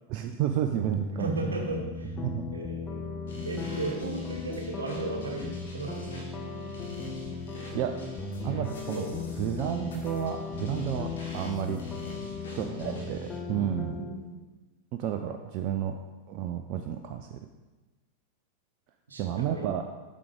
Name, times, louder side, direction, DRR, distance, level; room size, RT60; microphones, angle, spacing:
voice 1, 0.1-1.4 2.2-2.4 7.7-8.0 8.4-9.0 9.4-11.8 12.5-14.0 14.9-16.0 16.3-17.4 19.2-19.8, right 10 dB, 40° right, 6 dB, 0.4 m, -31 dB
sound 1, 0.8-14.2, left 4 dB, 20° left, 0.7 m, -37 dB
voice 2, 1.2-2.2 2.5-6.3 8.9-9.4 12.5-12.8 13.9-14.5 19.1-19.8, right 3 dB, 70° right, 3 dB, 1.2 m, -36 dB
sound 2, 3.3-13.4, left 3 dB, 65° left, 1.8 m, -46 dB
8.4 x 6.1 x 3.6 m, 1.2 s
figure-of-eight pair, 90°, 0 cm